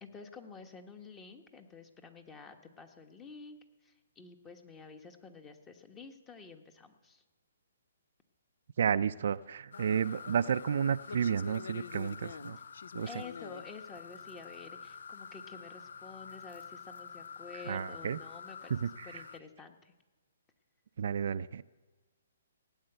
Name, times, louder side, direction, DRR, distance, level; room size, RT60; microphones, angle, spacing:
voice 1, 0.0-7.2 13.1-18.7 19.0-19.9, left 4 dB, 15° left, 7 dB, 1.3 m, -50 dB
voice 2, 8.8-12.6 12.9-13.1 17.7-18.2 18.7-19.2 21.0-21.6, right 7 dB, 65° right, 13 dB, 0.4 m, -31 dB
sound 1, 9.7-19.4, left 6 dB, 75° left, 0.5 m, -46 dB
17.5 x 8.8 x 8.0 m, 1.3 s
hypercardioid pair, 145°, 0 cm